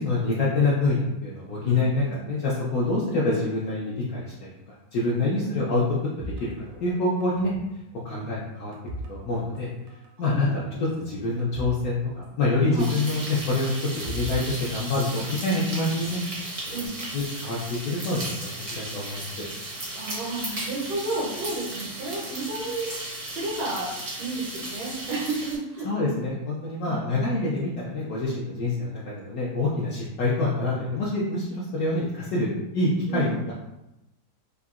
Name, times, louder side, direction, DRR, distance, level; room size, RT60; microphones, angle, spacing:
voice 1, 0.0-4.5 4.9-5.8 6.4-7.5 8.0-8.7 9.1-9.7 10.2-16.2 16.7-16.8 17.1-19.3 25.8-33.5, left 2 dB, 70° left, -6 dB, 0.9 m, -26 dB
voice 2, 1.6-2.2 5.3-5.6 10.2-10.8 12.7-12.9 16.7-16.9 19.7-23.0 23.3-23.9 24.2-26.1 26.8-27.3 33.1-33.4, right 2 dB, 90° right, -5 dB, 1.4 m, -32 dB
sound 1, 6.2-7.8 8.0-9.6 9.9-10.1 10.7-11.8 12.1-12.2 13.4-15.5 16.0-16.9, right 1 dB, 70° right, 0.8 m, -40 dB
sound 2, 12.8-25.6, right 1 dB, 45° right, 0.4 m, -36 dB
3.6 x 2.1 x 2.3 m, 0.91 s
omnidirectional pair, 1.8 m